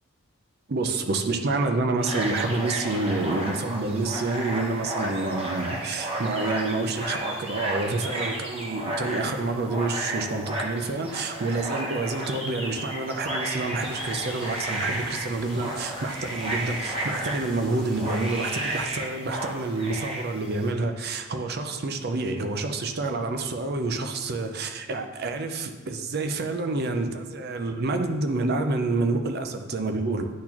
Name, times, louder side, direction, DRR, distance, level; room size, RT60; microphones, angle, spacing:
voice 1, 0.7-30.3, right 3 dB, 45° right, 7 dB, 0.5 m, -28 dB
sound 1, 2.0-20.7, right 1 dB, 25° right, 0.9 m, -33 dB
sound 2, 13.8-18.9, equal, ahead, 1.3 m, -42 dB
10.0 x 4.1 x 2.9 m, 1.3 s
head